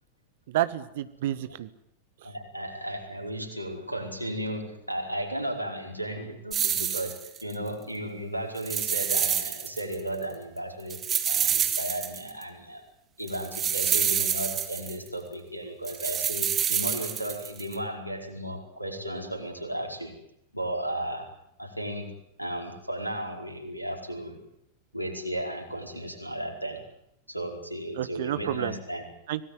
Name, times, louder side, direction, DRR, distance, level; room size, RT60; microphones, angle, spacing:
voice 1, 0.5-1.7 28.0-28.8 29.3-29.4, right 13 dB, 55° right, 14 dB, 1.6 m, -29 dB
voice 2, 2.2-11.0 11.3-12.8 13.2-20.2 20.5-21.3 21.6-22.1 22.4-24.4 24.9-26.8 27.3-29.1, right 1 dB, 90° left, 4 dB, 4.8 m, -34 dB
sound 1, 6.5-7.5 8.6-9.9 10.2-10.3 10.9-12.4 13.3-15.1 15.8-17.7, right 9 dB, 25° right, 2.9 m, -27 dB
25.5 x 18.5 x 9.6 m, 0.76 s
figure-of-eight pair, 90°, 0 cm